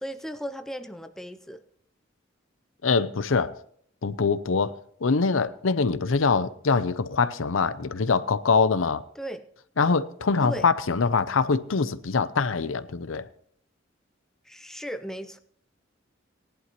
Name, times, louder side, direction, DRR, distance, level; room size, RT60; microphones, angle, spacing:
voice 1, 0.0-1.6 9.1-9.4 10.4-10.6 14.4-15.4, equal, ahead, 0.5 m, -36 dB
voice 2, 2.8-3.6 4.0-9.0 9.8-13.3, left 4 dB, 90° left, 0.6 m, -24 dB
19.0 x 11.0 x 3.0 m
head